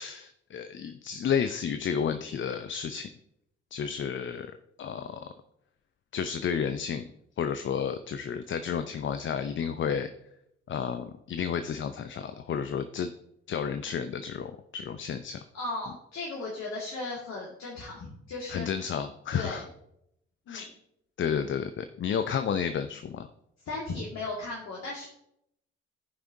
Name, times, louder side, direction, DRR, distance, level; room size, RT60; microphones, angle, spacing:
voice 1, 0.0-3.1 3.7-4.5 4.8-5.3 6.1-7.0 7.4-10.1 10.7-13.1 13.5-15.4 18.5-19.7 20.5-20.7 21.2-23.3, left 7 dB, 35° left, 10 dB, 0.6 m, -31 dB
voice 2, 15.5-18.7 19.3-19.6 20.5-20.7 23.7-25.1, left 2 dB, 50° left, -4 dB, 2.0 m, -36 dB
14.5 x 5.7 x 2.7 m, 0.77 s
figure-of-eight pair, 40°, 33 cm